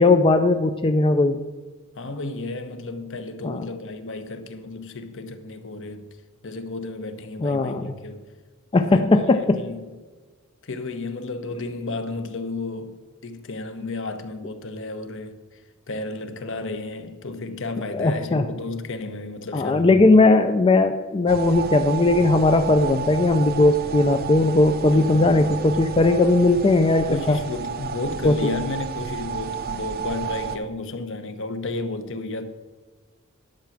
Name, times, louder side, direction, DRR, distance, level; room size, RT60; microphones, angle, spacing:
voice 1, 0.0-1.4 3.4-3.6 7.4-7.9 8.7-9.6 17.9-18.4 19.5-27.4 28.2-28.4, left 2 dB, 25° left, 0.4 m, -18 dB
voice 2, 1.9-6.1 6.4-8.3 8.7-9.9 10.6-15.6 15.9-20.0 20.2-20.3 24.9-25.7 27.1-32.5, left 2 dB, 60° left, 1.0 m, -33 dB
sound 1, 21.3-30.6, right 7 dB, 45° right, 0.7 m, -32 dB
10.5 x 5.9 x 7.2 m
head